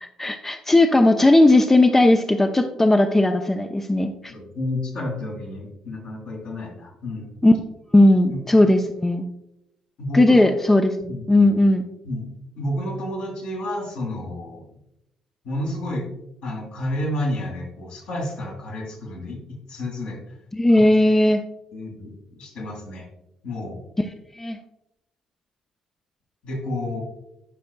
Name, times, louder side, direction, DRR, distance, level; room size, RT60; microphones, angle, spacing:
voice 1, 0.0-4.3 7.4-7.6 7.9-9.2 10.1-11.8 20.5-21.4 24.4-24.6, left 1 dB, 15° left, 6 dB, 0.6 m, -17 dB
voice 2, 4.3-7.3 8.3-8.4 10.0-10.4 11.1-11.5 12.0-12.3 12.6-14.6 15.4-16.1 16.4-19.4 19.7-20.2 20.7-20.8 21.7-23.1 23.4-23.8 26.4-27.0, left 1 dB, 65° left, -1 dB, 2.2 m, -30 dB
11.5 x 5.2 x 2.3 m, 0.85 s
hypercardioid pair, 50°, 2 cm